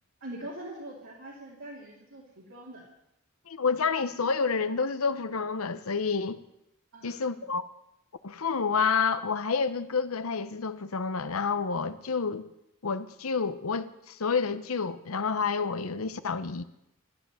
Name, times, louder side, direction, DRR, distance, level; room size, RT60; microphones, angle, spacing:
voice 1, 0.2-2.8 6.9-7.3, right 1 dB, 75° right, 3.0 m, -43 dB
voice 2, 3.5-6.4 7.0-7.6 8.2-12.5 12.8-16.6, left 5 dB, 80° left, 0.8 m, -29 dB
13.0 x 12.0 x 7.6 m
head